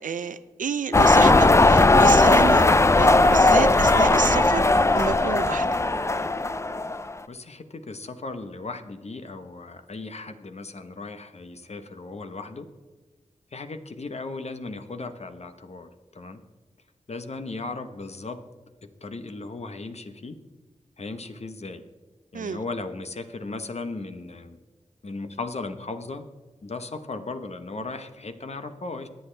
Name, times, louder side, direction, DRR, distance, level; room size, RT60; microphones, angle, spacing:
voice 1, 0.0-2.7 3.0-5.7 22.3-22.6, right 6 dB, 85° right, 13 dB, 0.5 m, -29 dB
sound 1, 0.9-7.1, left 2 dB, 20° left, 0.4 m, -18 dB
voice 2, 7.3-12.7 13.5-16.4 17.1-18.4 18.8-20.4 21.0-21.8 22.3-24.6 25.0-26.2 26.6-29.1, left 3 dB, 55° left, 9 dB, 1.0 m, -36 dB
21.0 x 8.0 x 3.3 m, 1.3 s
wide cardioid pair, 70°, 13 cm